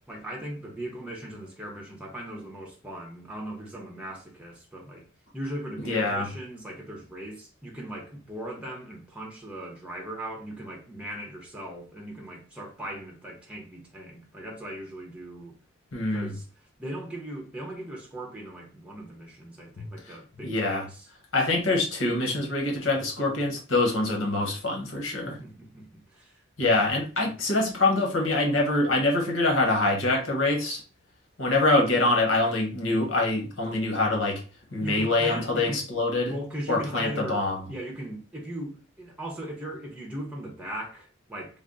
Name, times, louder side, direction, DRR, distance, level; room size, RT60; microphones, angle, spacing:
voice 1, 0.1-5.1 5.3-15.5 16.1-16.5 16.8-21.1 25.2-26.4 34.8-35.8 36.3-41.6, right 1 dB, 5° right, 0.7 m, -38 dB
voice 2, 5.9-6.3 15.9-16.3 19.8-19.9 20.4-20.8 21.3-25.4 26.6-30.8 31.4-34.4 34.7-36.3 36.7-37.6, left 2 dB, 80° left, 1.2 m, -25 dB
3.4 x 2.0 x 3.8 m
head